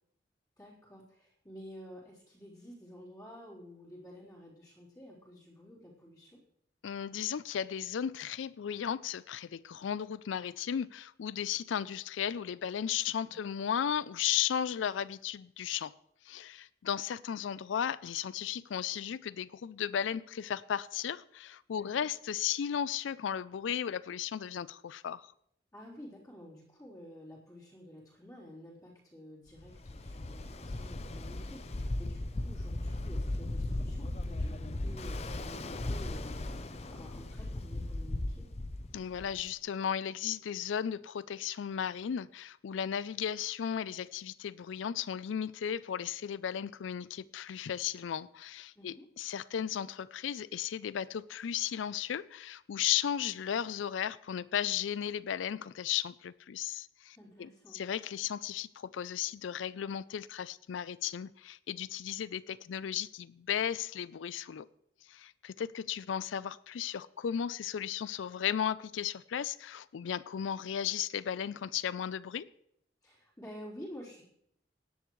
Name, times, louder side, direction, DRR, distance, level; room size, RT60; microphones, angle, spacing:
voice 1, 0.6-6.4 13.3-13.5 21.7-22.1 25.7-38.5 48.8-49.1 57.1-57.8 73.0-74.3, equal, 20° left, -7 dB, 3.8 m, -51 dB
voice 2, 6.8-15.9 16.2-25.3 38.9-64.7 65.1-72.5, left 9 dB, 90° left, 19 dB, 0.4 m, -35 dB
Ocean, 29.6-39.5, left 1 dB, 35° left, 0.6 m, -37 dB
17.5 x 11.0 x 3.1 m, 0.72 s
head